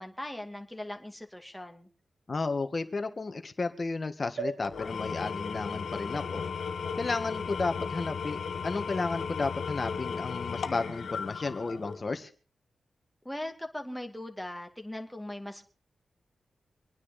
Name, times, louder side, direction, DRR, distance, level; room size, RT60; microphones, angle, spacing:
voice 1, 0.0-1.9 13.2-15.6, left 1 dB, 5° left, 3 dB, 2.3 m, -39 dB
voice 2, 2.3-6.4 7.0-12.3, left 3 dB, 40° left, 9 dB, 1.8 m, -33 dB
sound 1, 4.4-8.0 8.6-8.7 8.9-9.0, right 3 dB, 80° right, 7.4 m, -43 dB
Engine / Tools, 4.6-12.1, left 6 dB, 75° left, 1.4 m, -35 dB
26.0 x 9.9 x 4.2 m, 0.38 s
cardioid pair, 85°, 0 cm